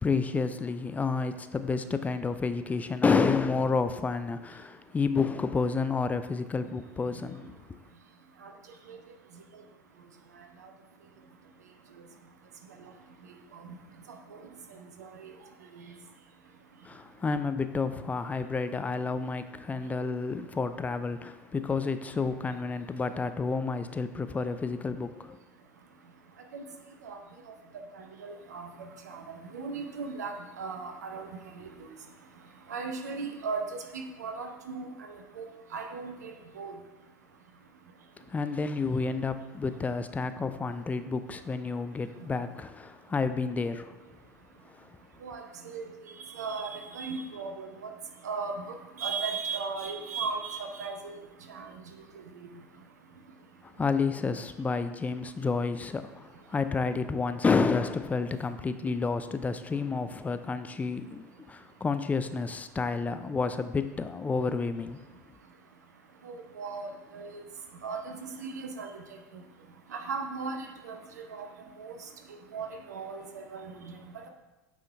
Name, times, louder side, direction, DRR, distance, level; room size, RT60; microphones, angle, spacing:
voice 1, 0.0-7.8 16.8-25.4 38.2-44.0 44.7-45.0 53.6-65.0, left 4 dB, 15° left, 0.4 m, -30 dB
voice 2, 15.0-15.3 15.7-16.0 26.5-26.6 27.0-27.2 27.9-31.9 32.7-36.8 45.2-45.9 46.2-47.9 48.2-51.2 51.5-51.7 52.3-52.5 66.2-67.4 67.8-69.0 69.3-69.4 69.9-71.5 71.8-74.3, right 4 dB, 80° right, 0.7 m, -37 dB
9.1 x 3.8 x 3.4 m
figure-of-eight pair, 75°, 9 cm